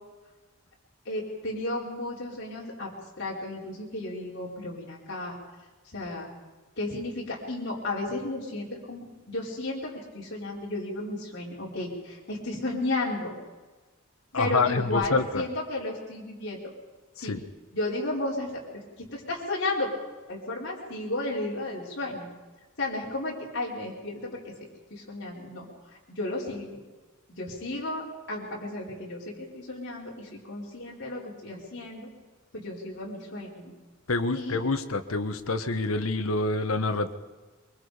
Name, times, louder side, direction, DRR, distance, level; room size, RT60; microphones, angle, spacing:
voice 1, 1.0-2.9 3.2-5.4 5.9-6.3 6.8-13.3 14.3-16.6 17.2-17.4 17.7-19.9 20.3-22.3 22.8-24.5 24.9-25.7 26.1-26.8 27.3-32.1 32.5-33.7 34.3-34.6, left 2 dB, 55° left, -6 dB, 4.9 m, -33 dB
voice 2, 14.3-15.4 17.2-17.4 34.1-37.1, left 3 dB, 85° left, 9 dB, 1.5 m, -27 dB
24.5 x 23.5 x 5.2 m, 1.3 s
head